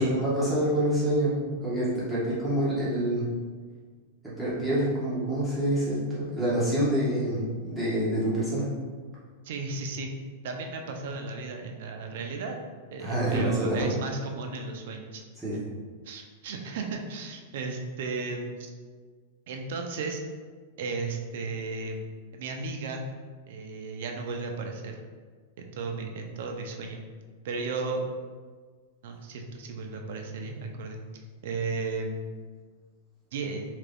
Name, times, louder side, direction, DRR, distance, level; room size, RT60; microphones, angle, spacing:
voice 1, 0.0-3.2 4.2-8.6 13.0-13.8 15.4-15.7, right 1 dB, ahead, -11 dB, 0.6 m, -27 dB
voice 2, 9.4-10.1 10.4-12.6 12.9-15.2 16.0-18.7 19.5-20.2 20.8-22.0 22.3-23.1 23.5-25.0 25.6-27.0 27.4-28.1 29.0-31.0 31.4-32.3 33.3-33.7, right 3 dB, 55° right, 3 dB, 0.4 m, -34 dB
2.8 x 2.5 x 3.4 m, 1.5 s
supercardioid pair, 170°, 0 cm